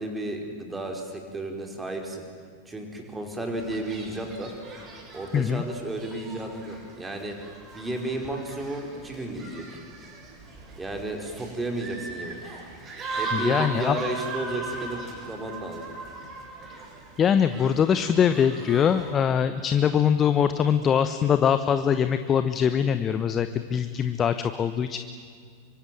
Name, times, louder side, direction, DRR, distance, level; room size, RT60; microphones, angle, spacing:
voice 1, 0.0-2.2 2.6-4.5 5.1-7.4 7.7-9.8 10.8-12.4 13.2-15.9, right 2 dB, 10° right, 3 dB, 5.0 m, -33 dB
sound 1, 3.6-19.1, right 3 dB, 25° right, 7.3 m, -39 dB
voice 2, 5.3-5.6 13.3-14.0 17.2-25.0, left 8 dB, 25° left, 11 dB, 1.0 m, -23 dB
25.5 x 24.5 x 9.3 m, 2.1 s
figure-of-eight pair, 90°, 0 cm